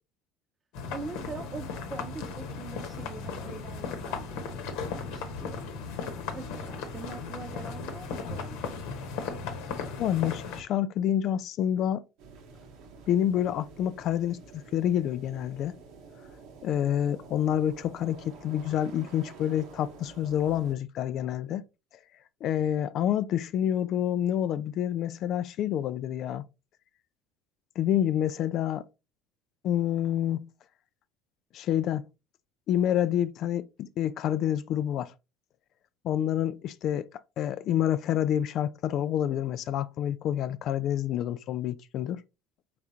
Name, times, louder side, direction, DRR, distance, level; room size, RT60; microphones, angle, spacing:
sound 1, 0.7-10.6, left 5 dB, 75° left, 1.0 m, -36 dB
voice 1, 0.9-5.7 6.3-8.7, right 4 dB, 30° right, 0.8 m, -43 dB
voice 2, 10.0-12.0 13.1-15.8 16.6-21.6 22.4-26.4 27.8-28.9 29.6-30.5 31.5-32.0 32.7-35.1 36.0-37.1 37.4-42.2, left 10 dB, 55° left, 0.3 m, -28 dB
sound 2, 12.2-20.8, right 4 dB, 70° right, 1.0 m, -49 dB
4.8 x 3.5 x 2.8 m
supercardioid pair, 85°, 0 cm